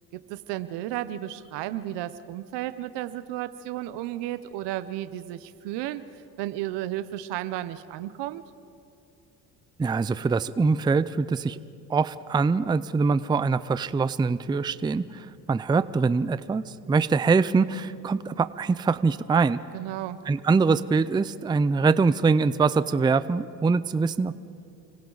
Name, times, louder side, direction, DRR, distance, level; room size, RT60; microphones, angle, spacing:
voice 1, 0.1-6.1 6.4-8.4 19.7-20.2, right 14 dB, 80° right, 12 dB, 0.9 m, -33 dB
voice 2, 9.8-11.6 11.9-19.6 20.3-24.4, right 4 dB, 10° right, 15 dB, 0.4 m, -23 dB
29.5 x 24.5 x 4.0 m, 2.5 s
cardioid pair, 95°, 41 cm